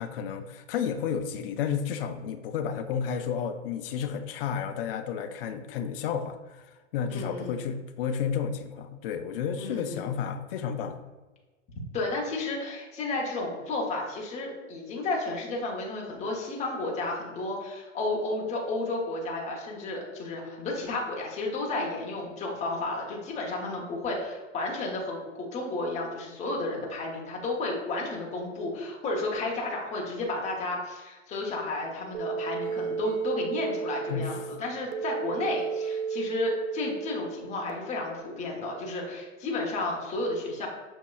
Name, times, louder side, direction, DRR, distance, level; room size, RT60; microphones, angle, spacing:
voice 1, 0.0-11.0 34.1-34.3, left 7 dB, 50° left, 8 dB, 0.5 m, -32 dB
voice 2, 7.1-7.6 9.6-10.1 11.9-40.7, left 2 dB, 20° left, -1 dB, 0.8 m, -32 dB
sound 1, 32.1-37.7, right 6 dB, 80° right, 0.6 m, -33 dB
6.3 x 2.8 x 2.3 m, 1.2 s
hypercardioid pair, 135°, 37 cm